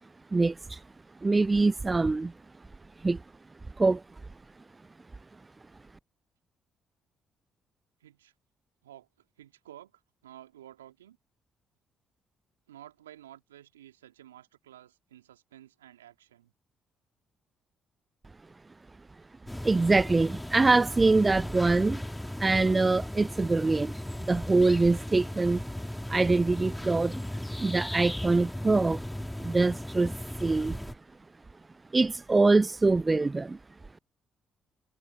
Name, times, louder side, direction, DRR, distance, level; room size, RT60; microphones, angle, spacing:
voice 1, 0.3-0.8 1.2-2.3 3.0-3.2 3.8-4.0 19.6-22.0 22.4-25.6 26.1-27.1 27.6-29.0 29.4-30.1 30.4-30.8 31.9-33.6, right 3 dB, 25° right, 0.4 m, -24 dB
voice 2, 8.0-8.3 8.8-11.2 12.7-16.5, right 12 dB, 85° right, 2.2 m, -52 dB
sound 1, 19.5-30.9, left 1 dB, 5° left, 2.9 m, -36 dB
figure-of-eight pair, 45°, 0 cm